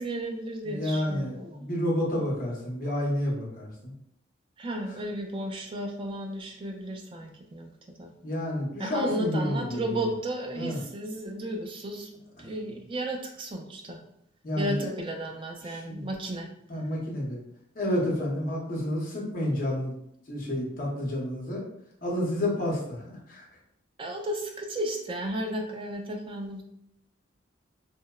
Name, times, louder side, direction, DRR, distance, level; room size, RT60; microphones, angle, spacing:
voice 1, 0.0-1.7 4.6-7.7 8.0-8.1 8.8-12.1 12.4-14.0 14.6-16.5 24.0-26.6, right 1 dB, 25° right, 2 dB, 0.3 m, -34 dB
voice 2, 0.6-3.9 8.2-10.1 10.6-10.8 14.4-14.9 15.7-16.0 16.7-17.4 17.7-19.9 20.3-21.6 22.0-23.4, left 1 dB, 45° left, -3 dB, 0.7 m, -30 dB
2.7 x 2.0 x 2.2 m, 0.74 s
head